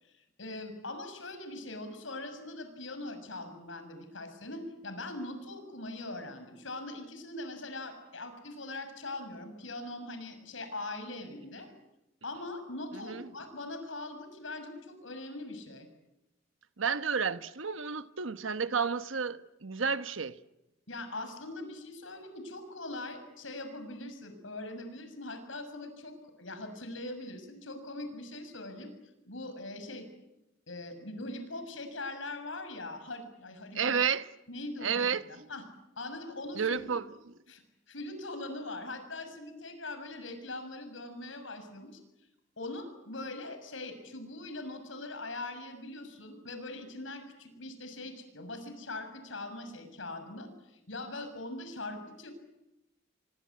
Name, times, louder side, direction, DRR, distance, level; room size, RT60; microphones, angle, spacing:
voice 1, 0.0-11.7 12.2-15.9 20.9-28.9 29.3-30.1 30.7-33.9 34.5-35.6 36.0-36.9 37.5-37.6 37.9-42.0 42.6-52.3, left 2 dB, 80° left, 6.6 m, -41 dB
voice 2, 12.9-13.3 16.8-20.4 33.7-34.3 34.8-35.5 36.5-37.1, right 6 dB, 85° right, 1.2 m, -31 dB
26.5 x 24.5 x 8.5 m
head